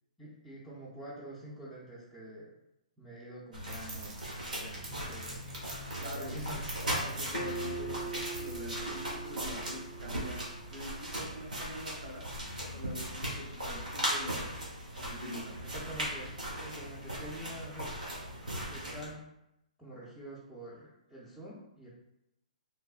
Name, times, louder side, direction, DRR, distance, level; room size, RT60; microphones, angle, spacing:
voice 1, 0.2-2.5 3.0-4.1 4.5-5.4 6.1-6.6 15.6-17.9 18.4-19.2 19.8-21.9, right 1 dB, ahead, -12 dB, 0.6 m, -46 dB
sound 1, 3.5-19.1, equal, 85° right, 1.0 m, -38 dB
sound 2, 3.7-8.6, right 3 dB, 35° right, 0.9 m, -49 dB
voice 2, 6.0-6.3 6.8-10.4 10.7-12.2 12.7-14.4 15.0-15.5, equal, 60° right, -2 dB, 1.0 m, -45 dB
Acoustic guitar, 7.3-10.8, right 3 dB, 45° left, 0.6 m, -42 dB
3.2 x 2.0 x 2.4 m, 0.86 s
hypercardioid pair, 130°, 4 cm